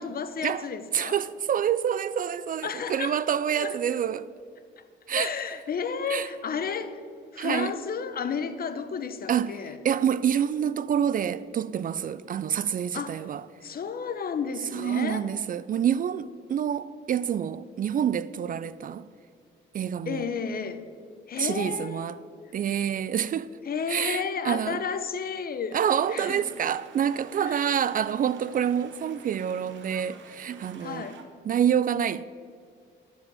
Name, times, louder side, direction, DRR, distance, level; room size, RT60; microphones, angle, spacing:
voice 1, 0.0-1.2 2.6-3.2 3.5-3.8 5.1-7.0 7.3-9.8 12.9-13.3 13.6-15.3 20.1-20.8 21.3-22.1 23.7-25.8 26.1-26.4 27.4-27.7 30.8-31.2, left 6 dB, 50° left, 0.9 m, -32 dB
voice 2, 0.9-4.3 5.1-5.3 6.1-6.3 7.4-7.7 9.3-9.6 9.8-13.5 14.7-19.1 19.7-20.3 21.4-22.2 22.5-23.5 23.9-24.8 25.7-31.1 31.4-32.3, right 9 dB, 45° right, 0.4 m, -27 dB
sound 1, 26.0-31.2, right 5 dB, 70° right, 1.3 m, -50 dB
12.5 x 5.1 x 7.6 m
cardioid pair, 90°, 20 cm